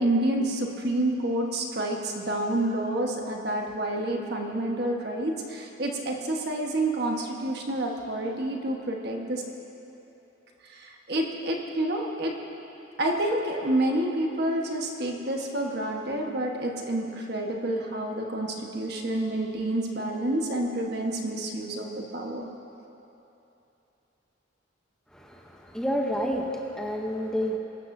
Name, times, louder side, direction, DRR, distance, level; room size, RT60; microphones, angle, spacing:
voice 1, 0.0-9.4 10.6-12.3 13.0-22.5, right 1 dB, 55° right, 1 dB, 1.3 m, -28 dB
voice 2, 25.1-27.6, equal, 5° left, 0 dB, 0.8 m, -29 dB
22.0 x 12.5 x 2.7 m, 2.9 s
head